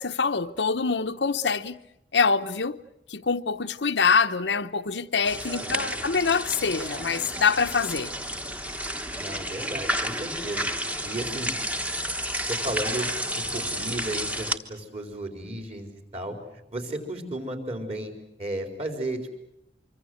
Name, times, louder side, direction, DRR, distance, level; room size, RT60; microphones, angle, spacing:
voice 1, 0.0-1.8 2.1-2.8 3.1-8.1, left 5 dB, 80° left, 0.9 m, -25 dB
sound 1, 5.2-14.6, equal, 10° right, 1.3 m, -31 dB
voice 2, 5.6-6.1 9.2-10.7 11.0-11.5 12.5-13.1 13.5-16.4 16.7-18.1 18.4-19.3, right 1 dB, 35° right, 4.5 m, -34 dB
25.0 x 25.0 x 8.0 m
head